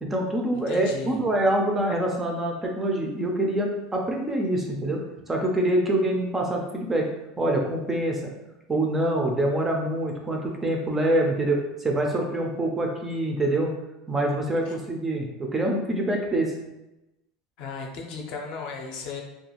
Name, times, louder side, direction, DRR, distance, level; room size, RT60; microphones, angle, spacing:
voice 1, 0.0-5.0 5.3-7.1 7.4-8.3 8.7-13.7 14.1-16.5, right 1 dB, 15° right, 0 dB, 0.3 m, -25 dB
voice 2, 0.5-1.2 14.7-14.8 17.6-19.2, left 5 dB, 45° left, 1 dB, 0.5 m, -35 dB
2.4 x 2.3 x 2.9 m, 0.95 s
supercardioid pair, 155°, 2 cm